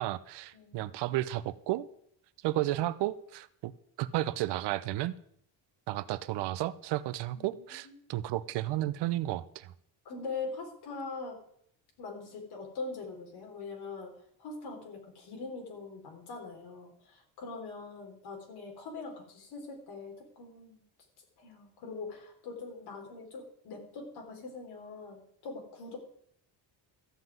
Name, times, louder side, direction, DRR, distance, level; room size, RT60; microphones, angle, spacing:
voice 1, 0.0-1.9 2.4-3.7 4.0-5.1 5.9-9.7, right 15 dB, 65° right, 16 dB, 0.7 m, -33 dB
voice 2, 0.5-1.2 7.3-8.1 10.0-11.4 12.0-14.1 14.4-20.8 21.4-26.0, left 4 dB, 60° left, 1 dB, 4.0 m, -42 dB
14.0 x 5.8 x 9.2 m, 0.68 s
cardioid pair, 175°, 43 cm